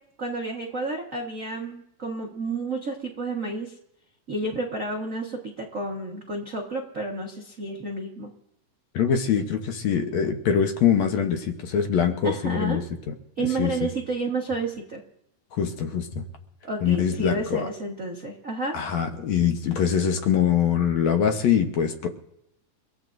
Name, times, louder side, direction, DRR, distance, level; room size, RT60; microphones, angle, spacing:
voice 1, 0.2-3.7 4.3-8.3 12.2-12.8 13.4-15.0 16.6-18.8, right 2 dB, 50° right, 0 dB, 0.9 m, -31 dB
voice 2, 8.9-12.8 13.6-13.7 15.5-16.3 16.8-17.7 18.7-22.1, left 8 dB, 65° left, 5 dB, 2.1 m, -23 dB
30.0 x 15.5 x 2.6 m, 0.81 s
omnidirectional pair, 3.7 m